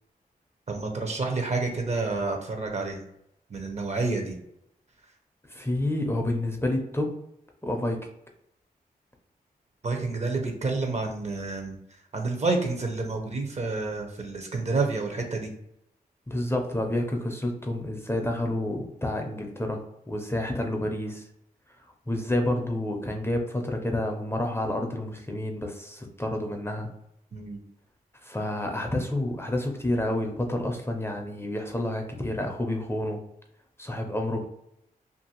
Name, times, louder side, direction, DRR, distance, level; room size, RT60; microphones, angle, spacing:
voice 1, 0.7-3.0 3.5-4.3 9.8-11.8 12.1-15.5 27.3-27.6, right 3 dB, 45° right, 3 dB, 0.7 m, -29 dB
voice 2, 5.5-7.1 7.6-8.1 16.3-21.2 22.1-26.9 28.2-33.2 33.8-34.4, left 1 dB, 15° left, 2 dB, 0.5 m, -29 dB
2.6 x 2.5 x 2.8 m, 0.78 s
cardioid pair, 65°, 16 cm